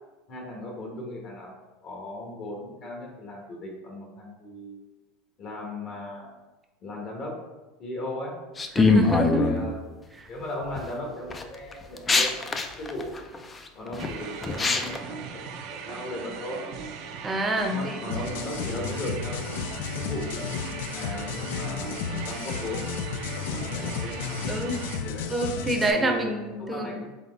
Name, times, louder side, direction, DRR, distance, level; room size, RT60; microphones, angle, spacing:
voice 1, 0.3-1.5 1.8-4.8 5.4-6.3 6.8-7.4 7.8-8.4 9.3-9.8 10.3-13.1 13.7-16.6 17.7-19.5 19.9-22.9 23.5-25.3 25.9-27.1, left 1 dB, 50° left, 0 dB, 1.2 m, -37 dB
sound 1, 8.6-9.6 10.4-10.8 11.3-15.0, left 4 dB, 20° left, 0.4 m, -23 dB
voice 2, 8.8-9.4 10.2-10.3 17.2-18.1 24.5-24.8 25.3-27.0, right 1 dB, 15° right, 3 dB, 0.7 m, -27 dB
sound 2, 14.0-25.0, right 6 dB, 60° right, 0.6 m, -39 dB
sound 3, 18.1-25.9, left 6 dB, 80° left, 0.4 m, -33 dB
4.1 x 3.6 x 3.4 m, 1.2 s
supercardioid pair, 110°, 0 cm